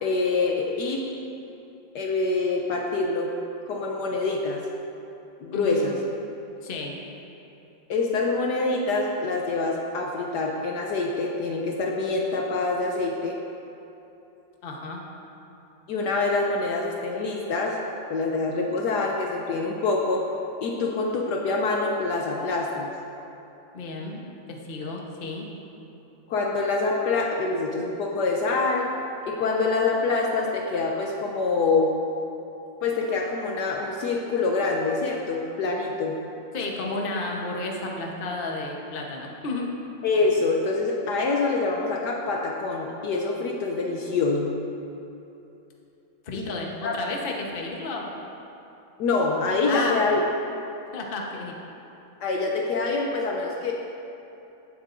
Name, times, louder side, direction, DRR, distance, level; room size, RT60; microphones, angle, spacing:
voice 1, 0.0-1.0 1.9-3.3 3.7-4.6 5.4-6.0 7.9-13.4 15.9-17.8 18.1-20.3 20.6-22.9 26.3-28.9 29.3-31.9 32.8-36.2 40.0-44.5 46.3-46.5 46.8-47.0 49.0-50.2 52.2-53.7, left 3 dB, 70° left, 0 dB, 1.2 m, -25 dB
voice 2, 5.5-5.9 6.6-6.9 14.6-15.0 23.7-25.5 36.5-39.7 46.2-48.1 49.6-50.0 50.9-51.6, left 3 dB, 35° left, -1 dB, 1.0 m, -32 dB
15.5 x 8.1 x 2.6 m, 2.9 s
omnidirectional pair, 2.1 m